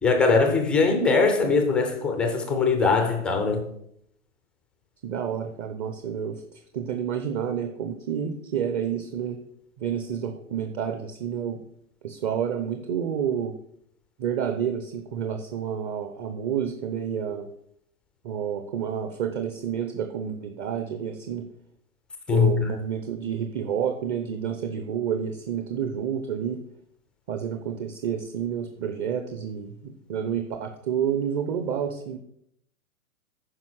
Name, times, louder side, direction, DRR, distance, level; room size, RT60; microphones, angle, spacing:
voice 1, 0.0-3.6 22.3-22.7, left 4 dB, ahead, 0.4 m, -21 dB
voice 2, 5.0-9.4 9.8-11.6 12.0-13.5 14.2-17.5 18.2-21.5 22.3-26.6 27.3-32.2, right 8 dB, 25° right, 0.7 m, -29 dB
9.6 x 5.3 x 6.1 m
hypercardioid pair, 130°, 43 cm